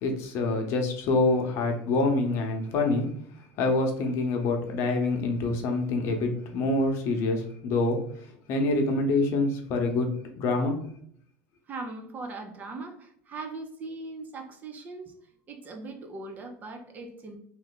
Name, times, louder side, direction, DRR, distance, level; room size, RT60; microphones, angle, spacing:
voice 1, 0.0-3.1 3.6-8.0 8.5-10.1 10.4-10.8, left 2 dB, 50° left, 3 dB, 0.8 m, -26 dB
voice 2, 11.7-15.1 15.5-17.4, right 3 dB, 30° right, 5 dB, 0.6 m, -39 dB
3.2 x 2.6 x 4.0 m, 0.62 s
supercardioid pair, 135°, 6 cm